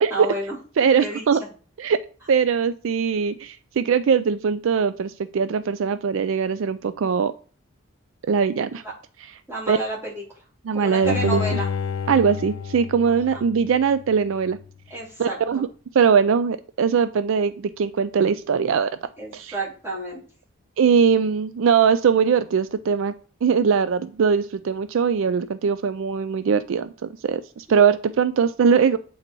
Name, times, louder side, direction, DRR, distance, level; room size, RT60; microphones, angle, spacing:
voice 1, 0.1-0.6 1.0-1.2 9.5-10.2 10.7-11.7 13.3-13.4 14.9-15.4 19.2-20.2, right 2 dB, 10° right, -7 dB, 2.9 m, -30 dB
voice 2, 0.8-1.4 1.8-2.0 2.3-7.3 8.3-8.8 9.7-9.8 10.7-11.6 12.1-14.6 15.2-15.7 15.9-19.0 19.3-19.5 20.8-23.1 23.4-29.0, right 6 dB, 70° right, 13 dB, 0.4 m, -21 dB
Bowed string instrument, 11.0-14.1 14.6-14.7, left 6 dB, 70° left, 0.4 m, -29 dB
8.2 x 4.0 x 4.5 m, 0.39 s
head